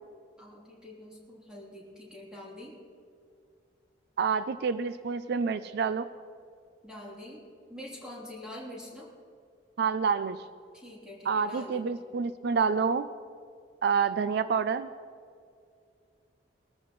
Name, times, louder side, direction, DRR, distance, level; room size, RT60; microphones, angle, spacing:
voice 1, 0.4-2.8 6.8-7.4 7.7-9.1 10.7-12.0, left 1 dB, 5° right, -4 dB, 3.2 m, -45 dB
voice 2, 4.2-6.1 9.8-10.4 11.3-13.1 13.8-14.9, right 5 dB, 60° right, 13 dB, 0.4 m, -28 dB
21.0 x 14.0 x 3.1 m, 2.4 s
head